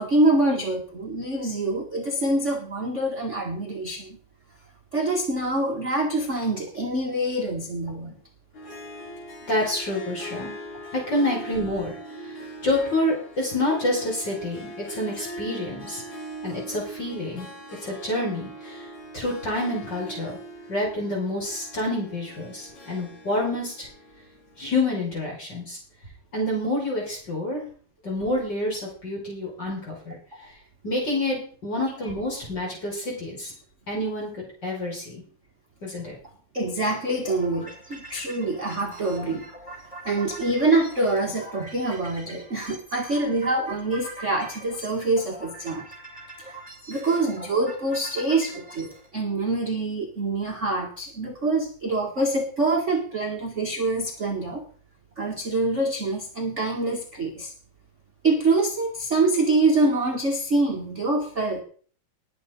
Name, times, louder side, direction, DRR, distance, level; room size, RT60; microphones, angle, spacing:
voice 1, 0.0-4.2 4.9-8.1 30.4-30.5 36.5-39.4 40.0-45.8 46.4-46.6 46.9-54.6 55.2-57.5 58.2-61.6, right 2 dB, 35° right, 1 dB, 1.2 m, -25 dB
Harp, 8.5-25.0, right 1 dB, 55° left, 4.2 m, -41 dB
voice 2, 9.5-10.5 10.9-11.9 12.6-16.0 16.4-17.5 17.8-18.8 19.1-20.4 20.7-23.9 24.6-25.8 26.3-27.6 28.0-30.2 30.8-33.5 33.9-35.2 35.8-36.1, left 1 dB, 30° left, -2 dB, 5.8 m, -28 dB
sound 1, 37.3-49.1, right 1 dB, 10° left, 6.3 m, -43 dB
20.0 x 8.1 x 3.8 m, 0.43 s
omnidirectional pair, 3.9 m